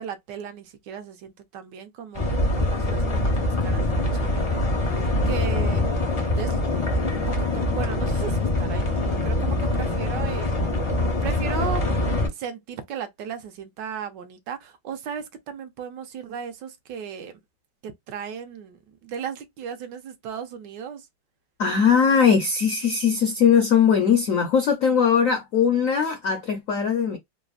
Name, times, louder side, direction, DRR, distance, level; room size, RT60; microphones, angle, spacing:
voice 1, 0.0-5.0 5.3-5.8 6.4-6.6 7.1-10.5 11.2-11.8 12.3-17.4 17.8-21.1, right 7 dB, 75° right, 1.2 m, -36 dB
sound 1, 2.1-12.3, left 2 dB, 55° left, 0.3 m, -24 dB
voice 2, 21.6-27.2, left 7 dB, 75° left, 0.7 m, -20 dB
3.3 x 2.0 x 2.3 m
omnidirectional pair, 2.1 m